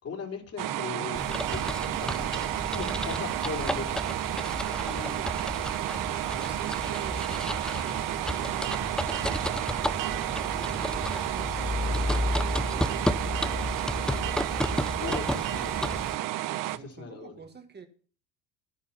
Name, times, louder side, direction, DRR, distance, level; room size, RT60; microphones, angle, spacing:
voice 1, 0.0-4.0 4.8-5.2 15.0-16.0 16.7-17.4, left 5 dB, 45° left, 3.5 m, -39 dB
sound 1, 0.6-16.8, right 15 dB, 65° right, 0.9 m, -31 dB
sound 2, 1.1-16.1, left 1 dB, ahead, 0.5 m, -32 dB
voice 2, 5.1-5.5 6.2-14.1 16.4-17.9, right 5 dB, 30° right, 1.5 m, -48 dB
10.5 x 10.0 x 5.7 m
cardioid pair, 105°, 35 cm